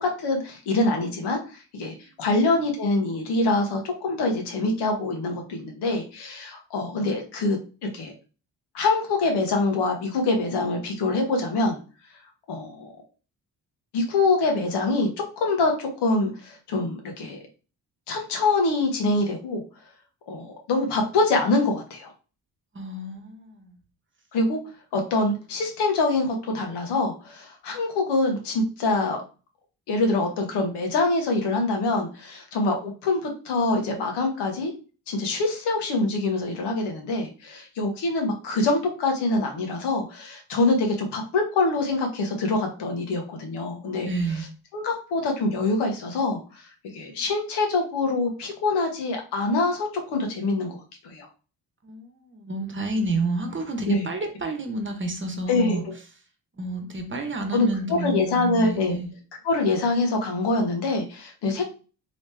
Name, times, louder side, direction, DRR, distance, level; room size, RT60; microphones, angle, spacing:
voice 1, 0.0-8.1 8.7-11.8 12.5-12.9 13.9-15.1 15.4-17.4 18.1-19.6 20.3-22.1 24.3-24.6 24.9-29.2 29.9-34.7 35.1-44.1 44.7-46.6 46.9-51.3 53.9-54.1 55.5-55.8 57.5-59.0 59.4-61.6, left 2 dB, 90° left, 2 dB, 1.1 m, -25 dB
voice 2, 22.7-23.8 44.0-44.5 47.0-47.2 51.8-55.9 56.6-59.1, right 2 dB, 30° right, 4 dB, 1.0 m, -30 dB
3.1 x 3.0 x 3.3 m, 0.35 s
cardioid pair, 75°, 40 cm